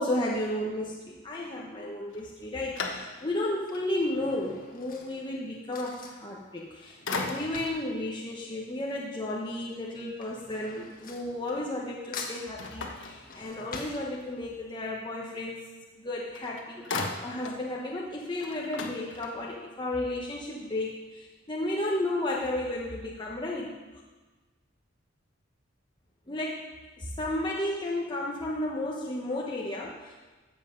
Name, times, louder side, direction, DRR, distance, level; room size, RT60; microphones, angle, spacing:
voice 1, 0.0-15.6 16.0-16.8 17.2-23.8 26.3-26.7 27.0-30.2, left 1 dB, 25° left, -3 dB, 1.2 m, -33 dB
sound 1, 2.1-3.5 4.1-4.2 6.4-6.7 7.1-7.8 12.6-13.9 16.0-16.1 16.3-17.7 18.0-18.1 18.4-19.6, left 3 dB, 70° left, 1.3 m, -37 dB
Drawer open or close / Cutlery silverware, 2.1-2.5 3.3-9.2 9.5-11.9 12.1-14.7 15.1-15.2 15.4-15.5, left 4 dB, 45° left, 1.5 m, -45 dB
13.5 x 7.7 x 5.3 m, 1.2 s
head